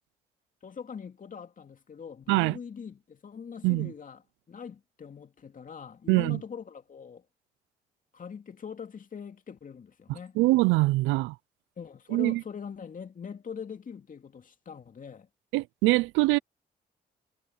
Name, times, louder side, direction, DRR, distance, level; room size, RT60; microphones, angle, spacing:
voice 1, 0.6-4.2 4.5-7.2 8.1-10.4 11.8-15.3, left 6 dB, 45° left, 2.6 m, -42 dB
voice 2, 6.1-6.4 10.4-11.3 12.1-12.4 15.5-16.4, right 21 dB, 80° right, 0.6 m, -23 dB
supercardioid pair, 60°, 19 cm